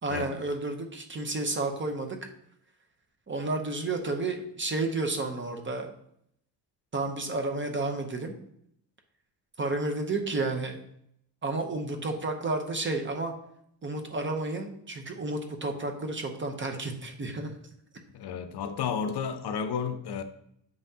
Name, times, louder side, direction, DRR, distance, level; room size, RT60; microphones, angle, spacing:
voice 1, 0.0-2.2 3.3-5.9 6.9-8.3 9.6-10.8 11.4-13.3 13.8-17.5, right 2 dB, 25° right, 4 dB, 0.8 m, -31 dB
voice 2, 18.1-20.2, left 7 dB, 60° left, 9 dB, 0.7 m, -32 dB
7.7 x 5.6 x 2.8 m, 0.71 s
cardioid pair, 145°, 46 cm